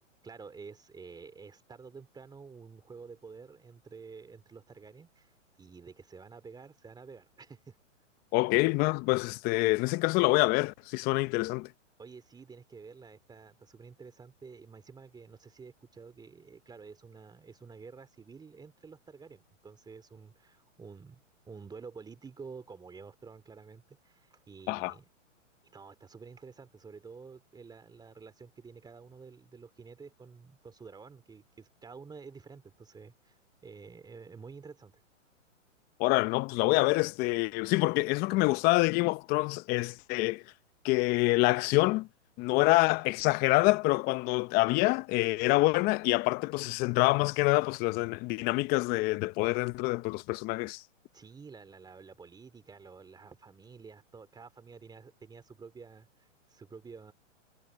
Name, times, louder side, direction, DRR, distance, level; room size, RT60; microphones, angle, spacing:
voice 1, 0.2-7.8 12.0-21.2 21.5-25.1 25.6-34.9 51.1-57.1, right 5 dB, 10° right, 2.6 m, -50 dB
voice 2, 8.3-11.7 24.7-24.9 36.0-40.4 40.8-42.1 42.4-50.8, left 22 dB, 25° left, 0.7 m, -26 dB
hypercardioid pair, 130°, 38 cm